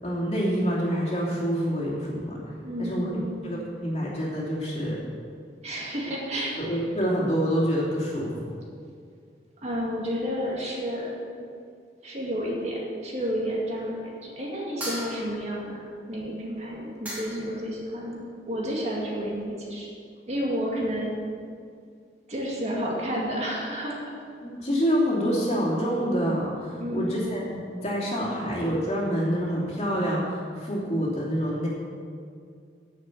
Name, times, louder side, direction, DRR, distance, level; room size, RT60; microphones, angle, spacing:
voice 1, 0.0-2.4 2.8-5.0 6.6-8.3 24.4-31.7, equal, 35° left, -5 dB, 2.9 m, -27 dB
voice 2, 2.6-3.4 5.6-6.8 9.6-11.1 12.0-15.8 16.1-19.9 20.3-21.1 22.3-24.0 26.8-27.1, equal, 35° right, -3 dB, 2.1 m, -31 dB
sound 1, 14.8-15.6 16.7-16.8 17.0-17.6, equal, 10° right, 2.9 m, -36 dB
9.7 x 7.5 x 8.4 m, 2.2 s
head